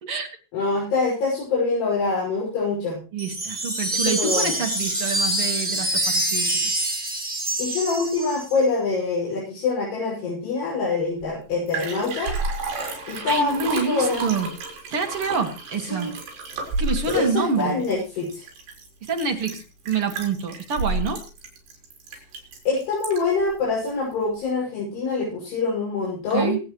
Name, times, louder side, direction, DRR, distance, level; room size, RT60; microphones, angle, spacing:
voice 1, 0.5-3.0 3.9-4.6 7.6-12.3 13.1-14.2 15.9-16.1 17.1-18.4 22.7-26.6, left 4 dB, 70° left, -6 dB, 8.1 m, -25 dB
voice 2, 3.1-6.7 13.0-14.5 14.9-16.1 16.8-17.8 19.1-21.2 26.3-26.6, right 5 dB, 50° right, 3 dB, 1.8 m, -27 dB
Wind chime, 3.2-8.6, right 1 dB, 15° right, 4.8 m, -25 dB
Liquid, 11.2-11.3 11.5-23.4 23.9-24.0, right 3 dB, 75° right, 6.1 m, -32 dB
25.5 x 8.6 x 3.1 m, 0.32 s
omnidirectional pair, 4.9 m